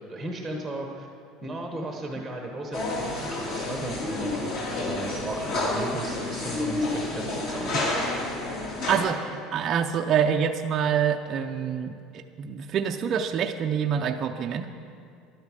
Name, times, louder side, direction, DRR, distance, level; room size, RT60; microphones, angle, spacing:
voice 1, 0.1-1.1 1.4-8.1, right 1 dB, ahead, 1 dB, 1.0 m, -35 dB
sound 1, 2.7-9.0, left 2 dB, 45° left, 2.5 m, -29 dB
voice 2, 8.9-14.7, right 8 dB, 30° right, 3 dB, 0.5 m, -26 dB
11.5 x 9.6 x 7.4 m, 2.4 s
cardioid pair, 170°, 0 cm